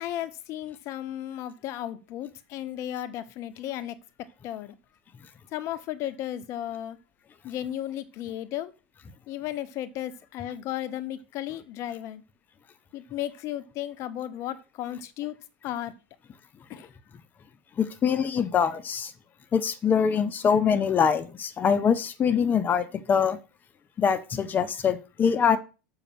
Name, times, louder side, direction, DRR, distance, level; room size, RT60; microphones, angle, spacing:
voice 1, 0.0-4.0 4.4-4.7 5.5-7.0 7.4-8.7 9.3-12.2 12.9-15.3 15.6-15.9 16.7-16.9, left 12 dB, 50° left, 1.0 m, -34 dB
voice 2, 17.8-19.1 19.5-23.4 24.0-25.6, left 7 dB, 30° left, 1.2 m, -24 dB
6.9 x 5.8 x 6.0 m
hypercardioid pair, 100°, 6 cm